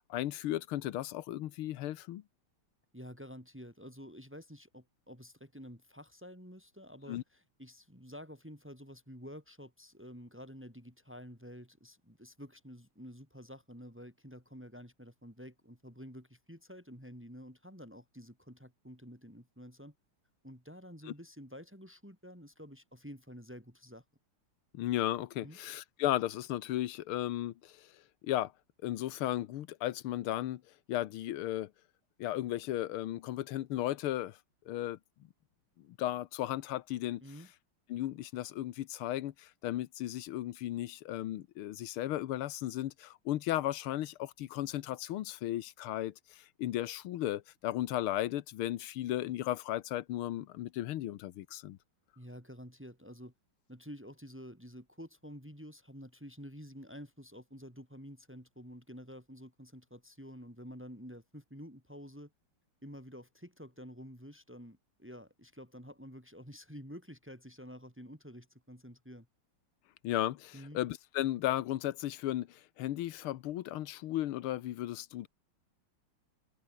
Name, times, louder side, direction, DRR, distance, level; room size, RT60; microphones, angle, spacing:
voice 1, 0.1-2.2 7.1-7.2 24.7-27.9 28.2-28.5 28.8-30.6 30.9-31.7 32.2-34.4 34.7-35.0 35.8-37.2 37.9-51.8 70.0-75.3, left 13 dB, 85° left, 1.8 m, -35 dB
voice 2, 2.9-19.9 20.4-24.0 25.4-25.6 37.2-37.5 52.2-53.3 53.7-62.3 62.8-69.3 70.5-70.8, equal, 5° right, 6.3 m, -50 dB
omnidirectional pair, 2.4 m